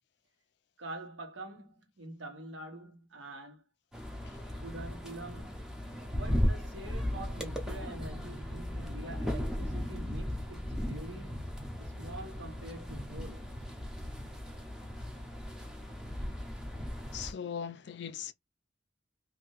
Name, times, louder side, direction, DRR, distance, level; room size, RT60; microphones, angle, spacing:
voice 1, 0.8-3.6 4.6-5.6 6.1-11.4 11.8-13.6, right 1 dB, 80° right, 1.2 m, -46 dB
sound 1, 3.9-17.3, equal, 5° right, 0.6 m, -36 dB
voice 2, 17.1-18.3, left 8 dB, 60° left, 0.4 m, -39 dB
2.7 x 2.6 x 3.0 m
head